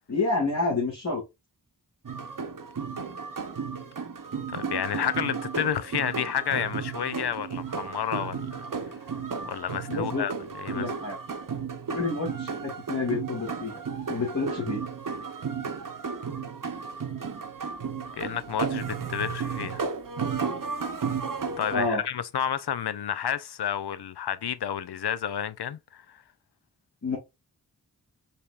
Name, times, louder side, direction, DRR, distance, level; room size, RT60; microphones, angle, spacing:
voice 1, 0.1-1.2 9.9-10.3 10.7-11.2 11.9-13.8 14.1-14.9 21.7-22.0 27.0-27.2, left 3 dB, 45° left, 1.8 m, -29 dB
sound 1, 2.0-21.8, right 5 dB, 55° right, 0.8 m, -33 dB
voice 2, 4.5-8.5 9.4-10.3 10.6-10.9 18.2-19.8 21.6-26.0, left 9 dB, 85° left, 0.5 m, -30 dB
5.4 x 3.4 x 2.4 m
wide cardioid pair, 55°, 38 cm